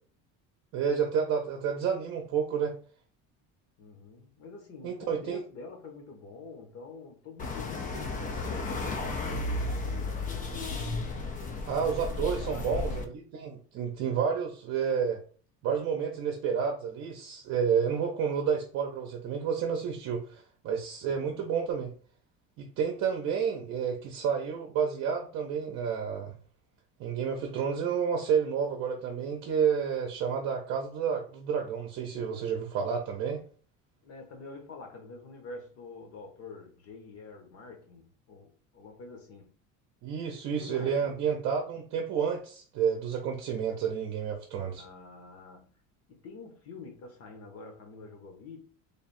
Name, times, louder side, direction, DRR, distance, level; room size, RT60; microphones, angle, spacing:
voice 1, 0.7-2.7 4.8-5.4 11.7-13.0 13.3-15.2 15.6-21.9 22.6-26.3 27.0-33.4 40.0-44.8, right 7 dB, 50° right, 0.7 m, -30 dB
voice 2, 3.8-10.1 12.2-13.0 21.0-21.4 34.0-39.6 40.5-41.3 44.8-45.7 46.1-48.6, left 4 dB, 45° left, 1.0 m, -47 dB
sound 1, 7.4-13.1, left 3 dB, 25° left, 0.4 m, -33 dB
3.4 x 2.3 x 4.2 m
cardioid pair, 160°, 34 cm